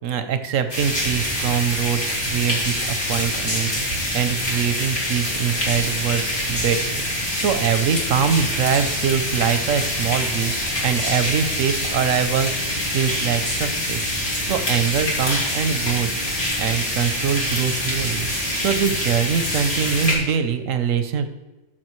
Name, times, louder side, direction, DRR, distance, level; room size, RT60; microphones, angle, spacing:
voice 1, 0.0-3.7 4.1-10.5 10.8-14.1 14.4-16.2 16.6-18.3 18.6-21.3, right 7 dB, 85° right, 9 dB, 1.1 m, -23 dB
sound 1, 0.7-20.1, left 1 dB, 40° left, 2.5 m, -25 dB
13.0 x 6.1 x 3.1 m, 1.1 s
omnidirectional pair, 1.3 m